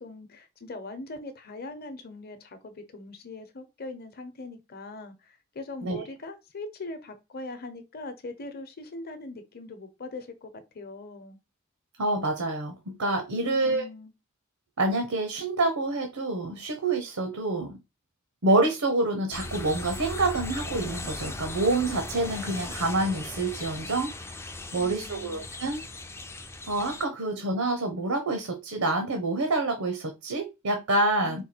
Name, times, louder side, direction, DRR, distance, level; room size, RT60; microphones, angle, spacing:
voice 1, 0.0-11.4 13.4-14.1 24.7-25.4 31.2-31.4, left 2 dB, 45° left, 0.8 m, -41 dB
voice 2, 12.0-13.9 14.8-17.7 18.4-24.4 24.7-25.8 26.7-31.4, right 2 dB, 85° right, 0.9 m, -27 dB
sound 1, 19.3-27.1, left 2 dB, 10° left, 0.3 m, -38 dB
4.5 x 2.4 x 4.3 m
head